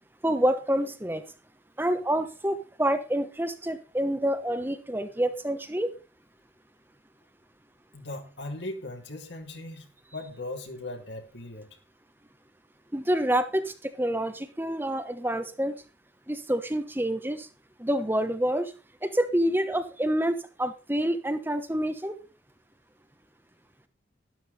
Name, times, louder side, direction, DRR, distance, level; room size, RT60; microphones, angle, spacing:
voice 1, 0.2-1.2 1.8-5.9 12.9-15.7 16.3-17.5 17.8-18.7 19.0-22.2, right 1 dB, 10° right, 8 dB, 1.0 m, -27 dB
voice 2, 7.9-9.9 10.1-11.7, left 2 dB, 65° left, 4 dB, 3.1 m, -38 dB
12.5 x 12.5 x 4.1 m, 0.30 s
head